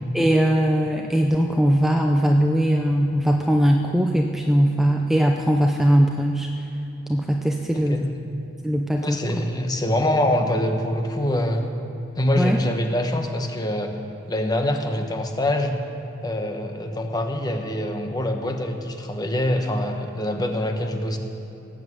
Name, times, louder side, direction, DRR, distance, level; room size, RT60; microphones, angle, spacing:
voice 1, 0.1-6.5 7.1-8.1 8.6-9.2 12.4-12.6, equal, ahead, 2 dB, 0.6 m, -20 dB
voice 2, 7.7-8.1 9.0-11.7 12.2-13.9 14.3-15.8 16.2-21.2, left 1 dB, 20° left, 4 dB, 1.2 m, -24 dB
18.5 x 7.6 x 8.0 m, 2.9 s
head